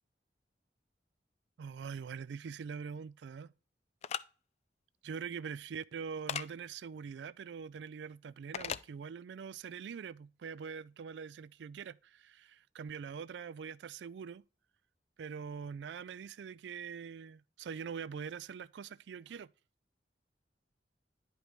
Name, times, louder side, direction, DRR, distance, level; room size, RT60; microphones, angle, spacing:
voice 1, 1.6-3.5 5.0-14.4 15.2-19.5, right 6 dB, 80° right, 0.4 m, -43 dB
sound 1, 4.0-4.2 6.3-6.5 8.5-8.9, left 8 dB, 40° left, 0.3 m, -36 dB
10.0 x 5.2 x 3.1 m
head